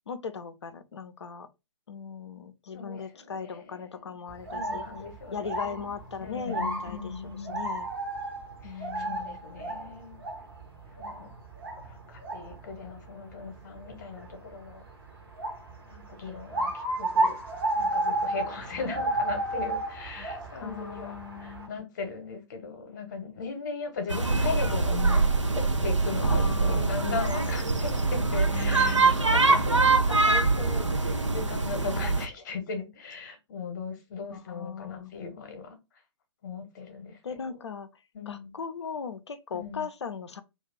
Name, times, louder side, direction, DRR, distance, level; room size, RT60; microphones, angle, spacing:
voice 1, 0.1-1.5 1.9-4.8 5.3-7.9 8.6-9.4 18.7-18.9 20.2-20.3 20.6-21.7 26.2-26.9 28.5-29.2 31.8-32.2 34.3-35.1 37.2-37.9 38.3-40.4, left 6 dB, 70° left, 0.4 m, -38 dB
voice 2, 2.7-4.1 4.4-5.9 6.2-7.6 8.6-10.2 10.9-11.3 11.8-14.8 15.9-17.4 17.7-25.2 25.5-35.8 36.4-37.6 38.1-38.5 39.5-39.9, left 4 dB, 40° left, 0.8 m, -38 dB
sound 1, 4.3-21.7, right 2 dB, 50° right, 0.8 m, -33 dB
sound 2, 24.1-32.3, right 3 dB, 90° right, 0.4 m, -24 dB
2.4 x 2.3 x 3.3 m
figure-of-eight pair, 125°, 15 cm